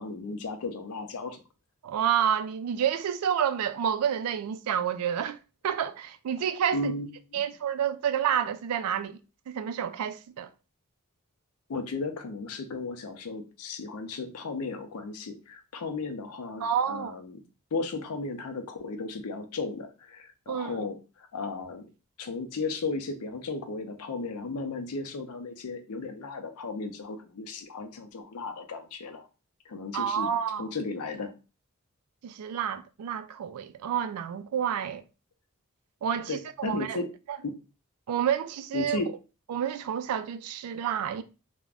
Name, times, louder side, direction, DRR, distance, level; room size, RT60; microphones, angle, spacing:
voice 1, 0.0-1.4 6.7-7.5 11.7-17.4 17.7-21.9 22.2-29.3 29.7-30.3 30.6-31.3 36.3-37.1 37.4-37.6 38.7-39.1, left 3 dB, 80° left, 0.5 m, -35 dB
voice 2, 1.8-5.4 5.6-6.9 7.3-9.2 9.5-10.5 16.6-17.1 20.5-20.9 29.9-30.7 32.2-35.0 36.0-37.0 38.1-39.0 39.5-41.2, right 8 dB, 90° right, 0.3 m, -29 dB
2.4 x 2.1 x 3.3 m
head